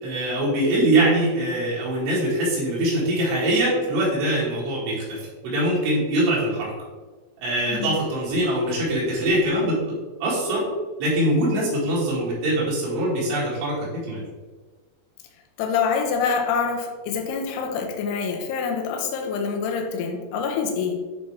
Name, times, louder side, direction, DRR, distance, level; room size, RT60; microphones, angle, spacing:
voice 1, 0.0-6.7 7.4-9.8 10.2-10.7 11.0-14.2, right 1 dB, 80° right, -7 dB, 4.3 m, -23 dB
voice 2, 15.6-21.1, left 5 dB, 80° left, 2 dB, 2.5 m, -26 dB
9.4 x 4.2 x 3.3 m, 1.3 s
omnidirectional pair, 5.5 m